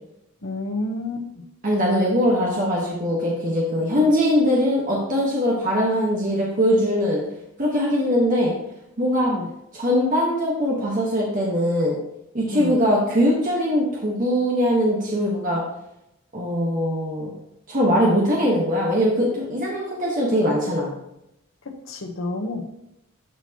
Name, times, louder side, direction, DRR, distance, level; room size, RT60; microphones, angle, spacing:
voice 1, 0.4-1.4 4.0-4.1 9.3-9.5 12.5-12.7 21.9-22.6, left 2 dB, 65° left, 3 dB, 1.0 m, -29 dB
voice 2, 1.6-7.2 7.6-8.5 9.0-9.3 9.7-12.0 12.3-15.6 16.3-17.3 17.7-20.9, equal, 35° right, -3 dB, 1.2 m, -21 dB
11.5 x 4.4 x 2.9 m, 0.83 s
head